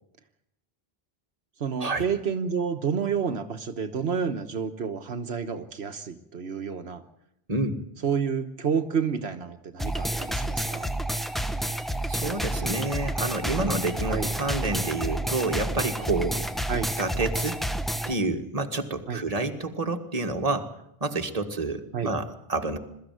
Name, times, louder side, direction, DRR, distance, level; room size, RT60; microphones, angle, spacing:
voice 1, 1.6-7.0 8.0-10.9 14.1-14.3 16.7-16.9 19.1-19.2 21.9-22.1, right 6 dB, 80° right, 7 dB, 1.4 m, -29 dB
voice 2, 7.5-7.8 12.1-16.4 17.0-17.6 18.1-20.7 21.0-22.8, right 2 dB, 35° right, 5 dB, 1.9 m, -28 dB
sound 1, 9.8-18.1, right 1 dB, ahead, 0.9 m, -29 dB
22.5 x 14.0 x 9.2 m, 0.78 s
omnidirectional pair, 1.1 m